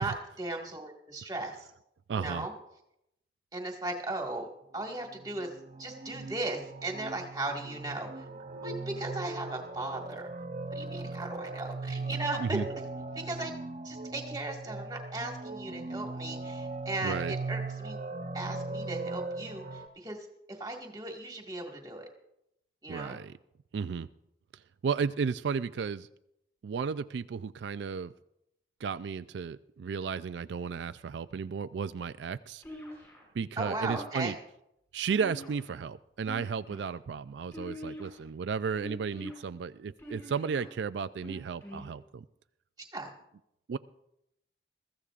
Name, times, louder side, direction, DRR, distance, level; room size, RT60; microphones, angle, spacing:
voice 1, 0.0-1.7 2.1-2.5 3.5-4.5 4.7-5.5 5.8-8.3 8.6-10.3 10.7-12.6 13.2-13.5 13.8-18.0 18.3-22.1 22.8-23.2 33.6-34.4 42.9-43.1, right 2 dB, 20° right, 1 dB, 1.7 m, -37 dB
voice 2, 2.1-2.5 12.4-12.6 17.0-17.4 22.9-23.3 23.7-24.1 24.8-26.1 26.6-28.1 28.8-32.6 33.3-34.4 34.9-42.2 43.7-43.8, right 6 dB, 80° right, 13 dB, 0.4 m, -34 dB
sound 1, 5.1-19.9, right 3 dB, 40° right, 0.7 m, -39 dB
sound 2, 32.6-33.2 33.8-34.4 35.1-35.8 36.2-36.9 37.5-38.2 38.8-39.3 40.0-40.6 41.2-41.9, equal, 15° left, 5.8 m, -44 dB
22.0 x 14.5 x 2.5 m, 0.83 s
head